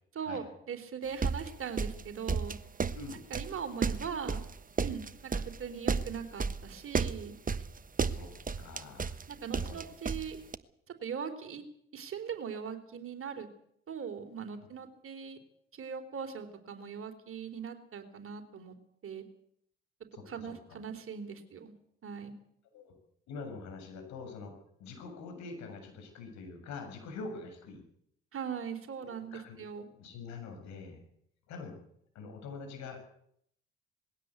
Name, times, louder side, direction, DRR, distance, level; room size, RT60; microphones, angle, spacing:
voice 1, 0.2-2.5 3.3-4.4 4.8-7.3 9.3-10.4 11.0-11.6 11.9-13.5 13.9-15.4 15.7-18.8 19.0-19.2 20.3-21.7 22.0-22.3 28.3-29.9, right 7 dB, 45° right, 7 dB, 3.7 m, -40 dB
sound 1, 1.2-10.6, right 5 dB, 25° right, 1.2 m, -33 dB
voice 2, 2.9-3.3 8.0-9.2 9.5-9.8 20.1-20.8 22.7-23.0 23.3-24.5 24.8-27.8 29.0-29.6 29.9-31.0 31.5-31.8 32.2-33.1, left 4 dB, 65° left, 5 dB, 7.1 m, -45 dB
20.5 x 16.5 x 8.3 m, 0.70 s
hypercardioid pair, 50°, 31 cm